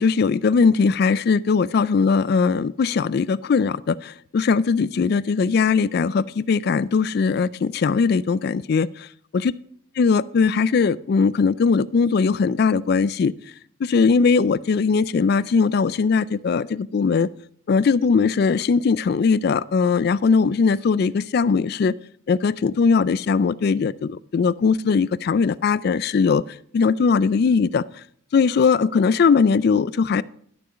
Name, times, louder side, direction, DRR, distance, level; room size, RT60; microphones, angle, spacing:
voice 1, 0.0-9.1 9.4-9.5 10.0-13.3 13.8-17.3 17.7-21.9 22.3-26.4 26.7-27.8 28.3-30.2, left 5 dB, 50° left, 20 dB, 0.3 m, -20 dB
12.0 x 6.7 x 5.1 m, 0.62 s
head